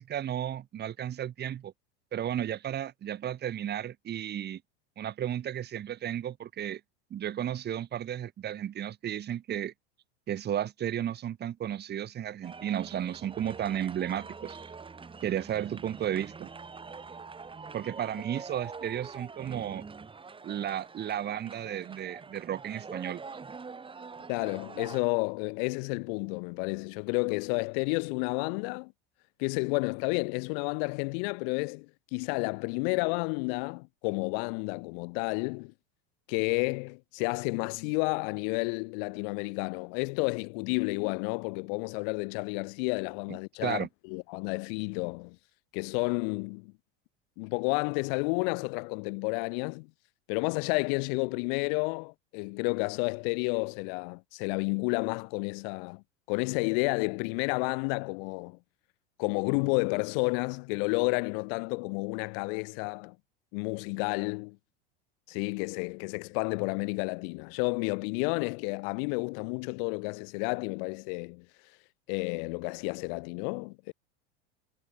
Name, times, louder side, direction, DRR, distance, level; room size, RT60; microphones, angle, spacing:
voice 1, 0.0-1.7 2.1-4.6 5.0-6.8 7.1-9.7 10.3-14.6 15.2-16.5 17.7-19.8 20.4-23.2 43.3-43.9, right 10 dB, 35° right, 2.6 m, -33 dB
sound 1, 12.4-25.0, right 4 dB, 15° right, 4.0 m, -45 dB
voice 2, 24.3-28.9 29.4-35.7 36.3-45.4 45.7-46.7 47.4-49.9 50.3-56.0 56.3-58.6 59.2-63.2 63.5-64.6 65.3-71.5 72.1-73.9, left 37 dB, 65° left, 3.8 m, -31 dB
supercardioid pair, 115°, 30 cm